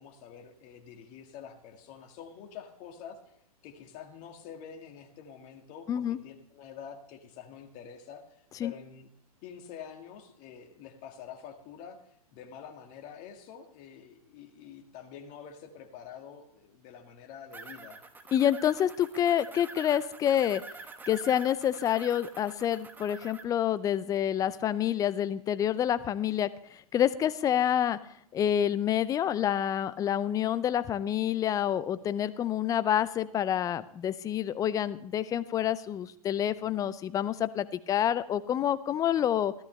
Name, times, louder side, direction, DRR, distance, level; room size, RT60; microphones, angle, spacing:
voice 1, 0.0-3.2 3.6-9.1 9.4-18.0, left 8 dB, 40° left, 4 dB, 1.8 m, -47 dB
voice 2, 5.9-6.2 8.6-8.7 18.3-20.6 21.1-26.5 26.9-28.0 28.3-39.5, left 10 dB, 20° left, 15 dB, 0.5 m, -28 dB
sound 1, 17.5-23.4, right 3 dB, 10° right, 1.0 m, -47 dB
14.0 x 13.0 x 3.2 m, 0.68 s
hypercardioid pair, 120°, 20 cm